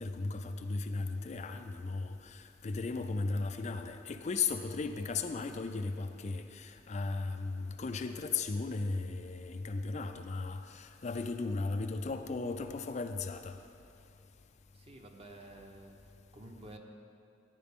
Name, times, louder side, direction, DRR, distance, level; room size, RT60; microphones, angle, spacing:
voice 1, 0.0-13.5, left 4 dB, 40° left, 7 dB, 0.4 m, -36 dB
voice 2, 14.7-16.8, right 1 dB, 30° right, 2 dB, 0.9 m, -51 dB
14.0 x 10.5 x 3.6 m, 2.6 s
head